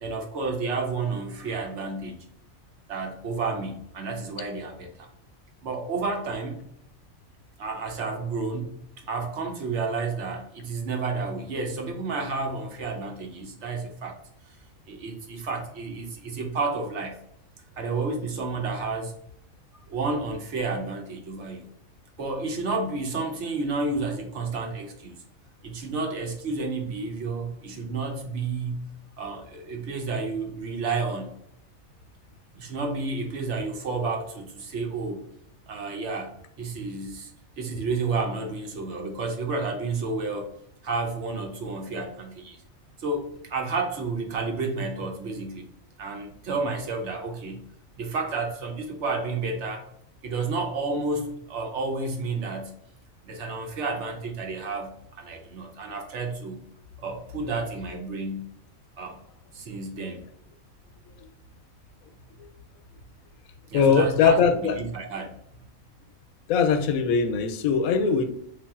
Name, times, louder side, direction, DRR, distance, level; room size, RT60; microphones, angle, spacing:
voice 1, 0.0-2.2 2.9-5.1 5.6-6.6 7.6-14.2 14.9-17.2 17.8-19.1 19.9-21.7 22.2-25.2 25.6-28.9 29.2-31.3 32.6-35.2 35.7-37.3 37.6-40.5 40.8-42.6 43.0-45.7 46.0-47.6 48.0-49.9 50.2-52.7 53.2-56.6 57.0-58.5 59.0-59.2 59.5-60.2 63.7-65.3, right 3 dB, 60° right, 3 dB, 1.0 m, -31 dB
voice 2, 63.7-64.8 66.5-68.2, left 5 dB, 85° left, 8 dB, 1.0 m, -21 dB
3.5 x 2.5 x 3.5 m, 0.74 s
omnidirectional pair, 1.4 m